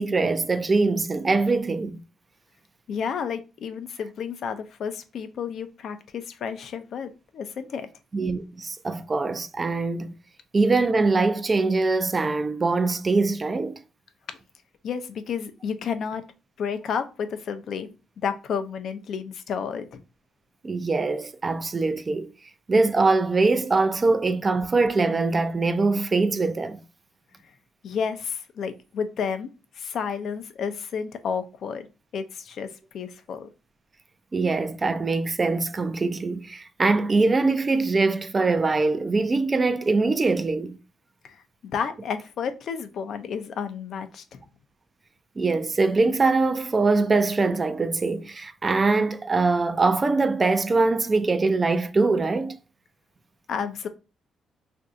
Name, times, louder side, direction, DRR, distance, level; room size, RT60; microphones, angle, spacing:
voice 1, 0.0-2.0 8.1-10.1 10.5-13.8 20.6-22.3 22.7-26.8 34.3-40.8 45.4-52.6, right 3 dB, 30° right, 0.4 m, -23 dB
voice 2, 2.9-7.9 14.8-16.2 16.6-17.9 18.2-20.0 27.8-29.5 29.7-31.9 32.1-33.5 41.2-44.4 53.5-53.9, left 6 dB, 65° left, 0.5 m, -31 dB
2.6 x 2.3 x 3.7 m
cardioid pair, 90°, 0 cm